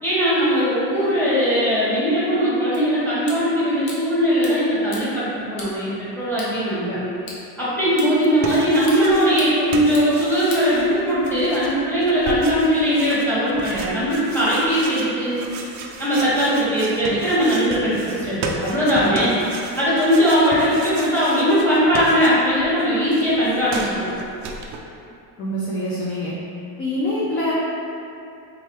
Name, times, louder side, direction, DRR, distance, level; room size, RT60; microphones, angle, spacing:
voice 1, 0.0-5.9 6.1-7.0 7.6-15.4 16.0-19.4 19.8-24.1, equal, 5° left, -10 dB, 1.4 m, -19 dB
sound 1, 2.7-11.3, left 2 dB, 45° left, 0.9 m, -42 dB
sound 2, 8.2-9.5 9.7-22.7 22.9-24.8, right 3 dB, 40° right, 0.4 m, -34 dB
voice 2, 25.4-26.3 26.8-27.5, left 1 dB, 25° left, -7 dB, 0.5 m, -25 dB
3.6 x 3.0 x 3.1 m, 2.7 s
supercardioid pair, 115°, 49 cm